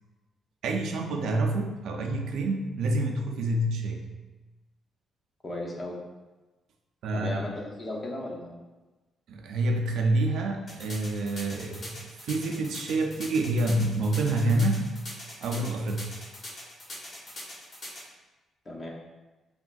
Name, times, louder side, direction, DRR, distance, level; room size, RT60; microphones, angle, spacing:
voice 1, 0.6-4.0 7.0-7.4 9.3-11.9 12.2-14.9 15.4-16.2, right 2 dB, 75° right, 2 dB, 0.3 m, -27 dB
voice 2, 5.4-5.9 7.1-8.6 18.7-18.9, left 1 dB, 35° left, -2 dB, 0.6 m, -35 dB
sound 1, 10.7-18.0, left 1 dB, 50° left, 1.2 m, -41 dB
3.4 x 2.4 x 2.2 m, 1.2 s
cardioid pair, 90°, 0 cm